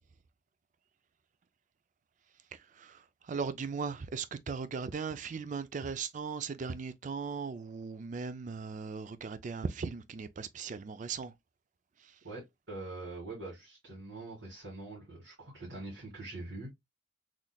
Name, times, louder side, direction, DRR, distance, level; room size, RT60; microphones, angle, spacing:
voice 1, 2.5-11.3 12.0-12.1, right 5 dB, 40° right, 0.3 m, -38 dB
voice 2, 12.2-16.7, right 2 dB, 75° right, 2.0 m, -44 dB
3.9 x 3.1 x 2.2 m
head